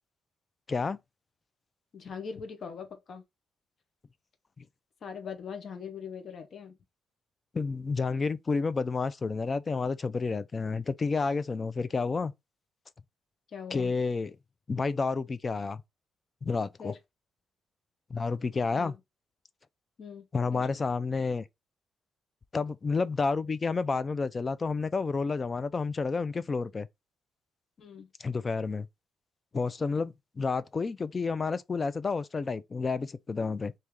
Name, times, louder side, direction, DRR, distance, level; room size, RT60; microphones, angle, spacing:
voice 1, 0.7-1.0 4.6-4.7 7.5-12.3 13.7-14.4 14.7-15.8 16.4-16.9 18.1-19.0 20.3-21.5 22.5-26.9 28.2-28.9 29.5-33.7, left 4 dB, 35° left, 0.3 m, -30 dB
voice 2, 1.9-3.2 5.0-6.8 13.5-13.9 16.8-17.0 18.8-18.9 20.0-20.7 27.8-28.1, left 6 dB, 55° left, 0.8 m, -41 dB
3.2 x 2.7 x 3.4 m
cardioid pair, 90°, 0 cm